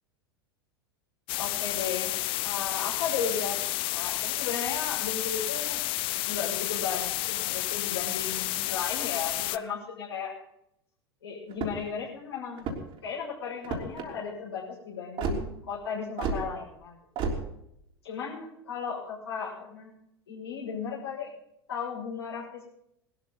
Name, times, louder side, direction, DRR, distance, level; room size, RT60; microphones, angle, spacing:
sound 1, 1.3-9.6, left 19 dB, 40° left, 0.6 m, -31 dB
voice 1, 1.4-5.8 6.3-10.3 11.2-12.7 13.0-17.2 18.0-19.9 20.3-21.3 21.7-22.7, left 6 dB, 75° left, -7 dB, 6.3 m, -35 dB
sound 2, 11.5-11.9 12.5-13.0 13.6-14.1 15.2-15.4 16.2-16.4 17.2-17.4, right 4 dB, 40° right, 3.6 m, -31 dB
20.5 x 13.0 x 4.1 m, 0.77 s
figure-of-eight pair, 85°, 13 cm